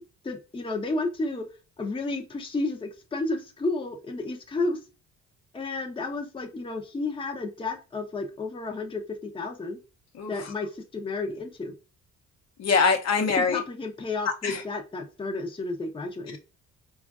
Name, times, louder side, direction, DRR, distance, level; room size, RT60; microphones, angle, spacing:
voice 1, 0.2-1.4 1.8-4.8 5.5-9.8 10.3-11.7 13.4-16.4, left 3 dB, 20° left, 0.6 m, -32 dB
voice 2, 12.6-13.6 14.4-14.6, left 5 dB, 60° left, 0.8 m, -23 dB
4.2 x 2.4 x 2.4 m
cardioid pair, 90°, 30 cm